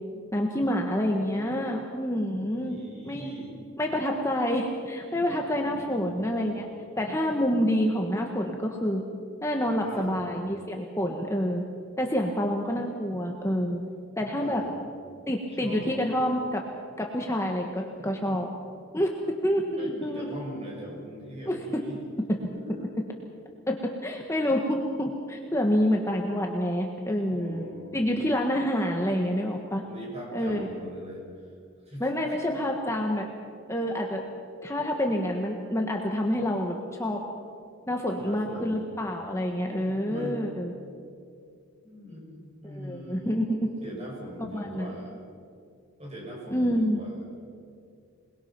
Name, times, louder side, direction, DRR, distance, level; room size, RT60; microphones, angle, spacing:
voice 1, 0.3-2.8 3.0-3.3 3.8-6.7 7.0-9.0 9.4-11.6 12.0-13.8 14.2-14.6 15.3-16.6 17.0-18.5 18.9-19.1 19.4-20.4 21.4-21.6 23.7-23.8 24.0-27.6 27.9-29.8 30.3-30.7 32.0-33.3 33.7-34.2 34.6-37.2 37.9-40.7 42.6-43.7 44.4-44.9 46.5-47.0, equal, 15° left, 1 dB, 1.4 m, -27 dB
voice 2, 2.5-3.6 5.4-6.1 7.0-7.1 9.6-10.2 14.4-14.7 15.6-16.0 19.6-22.0 22.6-22.8 27.3-28.1 29.8-31.2 31.9-32.3 38.2-38.8 40.1-40.4 41.8-45.1 46.0-47.2, equal, 30° right, -3 dB, 7.0 m, -41 dB
27.5 x 21.0 x 6.0 m, 2.4 s
head